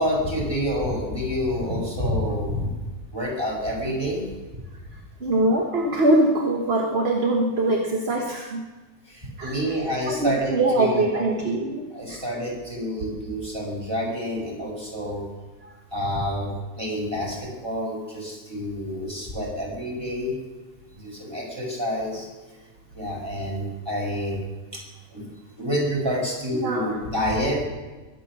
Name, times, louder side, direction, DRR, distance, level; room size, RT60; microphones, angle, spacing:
voice 1, 0.0-2.6 3.1-4.3 9.0-11.3 11.9-15.3 15.9-20.4 20.9-22.3 22.9-24.4 24.7-24.8 25.1-25.3 25.6-27.6, equal, 15° right, -3 dB, 5.4 m, -28 dB
voice 2, 5.2-8.6 9.4-9.5 10.1-12.2 26.5-27.0, right 2 dB, 40° right, 1 dB, 1.7 m, -23 dB
22.5 x 9.1 x 6.1 m, 1.2 s
omnidirectional pair, 1.7 m